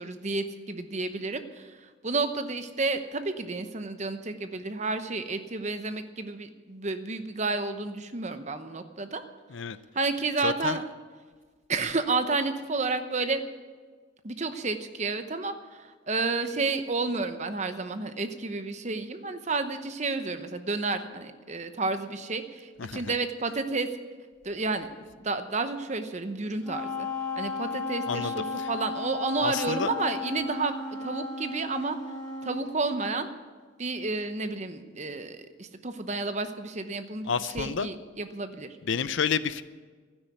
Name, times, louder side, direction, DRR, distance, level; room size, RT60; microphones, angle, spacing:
voice 1, 0.0-9.2 9.9-10.8 11.7-13.4 14.2-23.9 24.4-27.1 27.4-30.8 31.0-32.0 32.4-33.3 33.8-38.7, right 3 dB, 35° right, 9 dB, 0.9 m, -31 dB
voice 2, 10.4-10.8 22.8-23.1 28.1-28.7 29.4-29.9 37.3-37.9 38.8-39.6, left 6 dB, 70° left, 15 dB, 0.6 m, -30 dB
Wind instrument woodwind instrument, 26.6-32.7, left 4 dB, 5° left, 4.1 m, -34 dB
12.0 x 10.0 x 9.5 m, 1.5 s
head